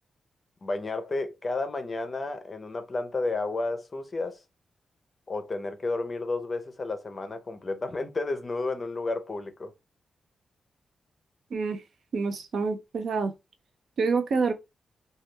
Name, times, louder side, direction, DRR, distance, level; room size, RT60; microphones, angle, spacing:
voice 1, 0.6-4.4 5.3-9.7, left 3 dB, 30° left, 0.5 m, -32 dB
voice 2, 11.5-11.8 12.1-13.3 14.0-14.5, right 4 dB, 65° right, 0.6 m, -27 dB
3.0 x 2.3 x 3.2 m
wide cardioid pair, 145°, 0 cm